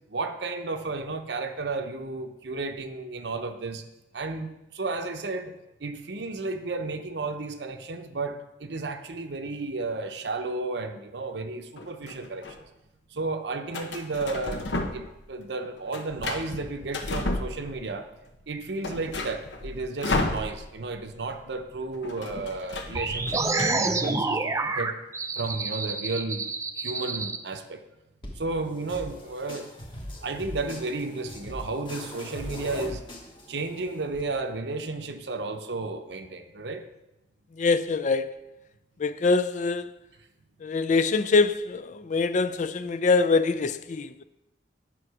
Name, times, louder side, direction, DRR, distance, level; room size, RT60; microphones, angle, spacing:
voice 1, 0.1-3.8 4.1-12.4 13.1-18.1 18.5-24.9 25.4-26.5 26.8-27.8 28.4-29.7 30.2-33.0 33.5-36.9, right 3 dB, 70° right, 0.8 m, -33 dB
sound 1, 11.8-12.6 13.7-15.2 15.5-18.0 18.3-18.4 18.7-20.9 21.2-21.3 21.6-23.7, left 2 dB, 90° left, 1.0 m, -33 dB
sound 2, 22.9-27.4, right 3 dB, 15° right, 0.5 m, -28 dB
sound 3, 28.2-34.2, left 1 dB, 30° left, 1.3 m, -41 dB
voice 2, 37.5-38.4 39.0-39.9 40.6-44.2, left 4 dB, 45° left, 0.4 m, -24 dB
9.4 x 5.9 x 4.8 m
head